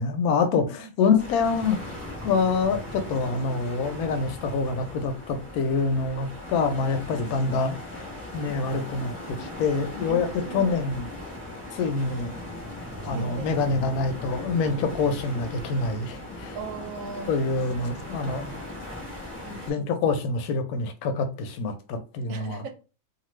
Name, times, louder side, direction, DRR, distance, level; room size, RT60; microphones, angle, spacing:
voice 1, 0.0-7.8 8.3-10.3 10.5-11.1 11.7-12.4 13.0-16.6 17.3-18.5 19.7-22.6, left 4 dB, 70° left, 1.0 m, -26 dB
voice 2, 0.6-1.1 3.3-3.4 10.1-10.8 13.1-13.5 16.5-17.4 19.4-19.9 22.3-22.7, right 5 dB, 65° right, 0.9 m, -38 dB
sound 1, 1.2-19.7, left 1 dB, 10° left, 0.9 m, -38 dB
2.6 x 2.5 x 3.0 m
omnidirectional pair, 1.7 m